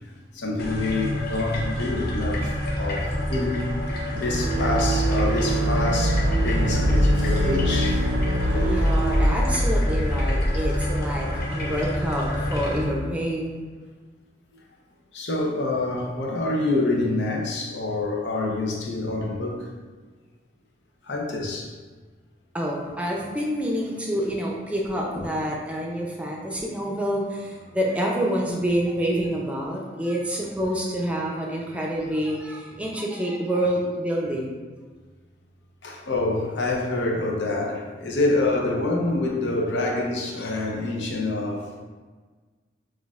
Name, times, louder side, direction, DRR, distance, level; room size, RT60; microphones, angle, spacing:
voice 1, 0.3-8.1 11.6-11.8 15.1-19.7 21.1-21.7 25.1-25.3 35.8-41.7, left 2 dB, 85° left, 0 dB, 0.7 m, -27 dB
sound 1, 0.6-12.8, equal, 55° left, 0.7 m, -25 dB
sound 2, 4.1-9.4, right 1 dB, 80° right, 0.5 m, -25 dB
voice 2, 8.5-13.6 22.5-34.6, equal, 10° right, -2 dB, 0.5 m, -27 dB
6.0 x 2.5 x 2.4 m, 1.4 s
head